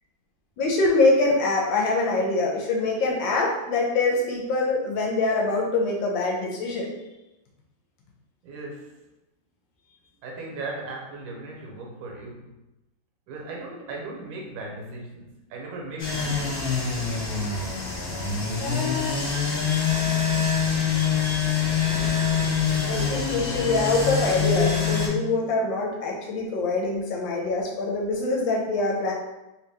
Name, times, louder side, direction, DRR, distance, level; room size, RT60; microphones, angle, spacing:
voice 1, 0.6-7.0 18.6-19.4 22.8-29.1, left 3 dB, 70° left, -1 dB, 1.4 m, -24 dB
voice 2, 8.4-9.0 10.2-12.6 13.3-17.4, right 2 dB, 80° right, -1 dB, 1.6 m, -38 dB
sound 1, 16.0-25.1, left 6 dB, 55° left, 0.6 m, -25 dB
3.3 x 2.9 x 3.3 m, 0.99 s
omnidirectional pair, 2.2 m